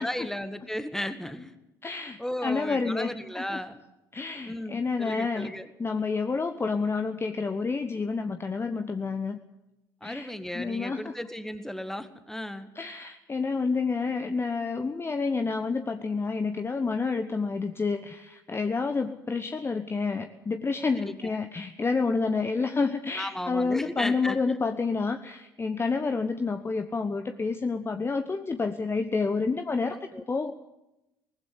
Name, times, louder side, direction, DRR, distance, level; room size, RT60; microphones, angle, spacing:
voice 1, 0.0-1.5 2.2-3.8 4.4-5.7 10.0-12.7 21.0-21.4 23.2-24.6 29.9-30.2, left 1 dB, 5° left, 11 dB, 1.8 m, -35 dB
voice 2, 1.8-3.4 4.1-5.5 5.8-9.4 10.0-11.1 12.8-30.0 30.3-30.5, left 4 dB, 20° left, 8 dB, 1.1 m, -29 dB
19.5 x 15.0 x 9.5 m, 0.92 s
figure-of-eight pair, 55°, 11 cm